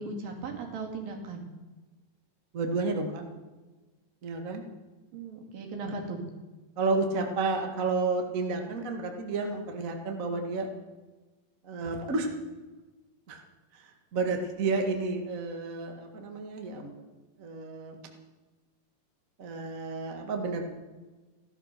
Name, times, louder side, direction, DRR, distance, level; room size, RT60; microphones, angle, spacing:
voice 1, 0.0-1.5 5.1-6.2, right 3 dB, 75° right, 1 dB, 4.1 m, -37 dB
voice 2, 2.5-3.2 4.2-4.6 5.8-5.9 6.8-10.7 11.6-12.3 13.3-13.4 13.7-16.9 17.4-18.0 19.4-20.7, right 3 dB, 35° right, 3 dB, 1.4 m, -31 dB
15.5 x 12.5 x 6.7 m, 1.2 s
omnidirectional pair, 4.1 m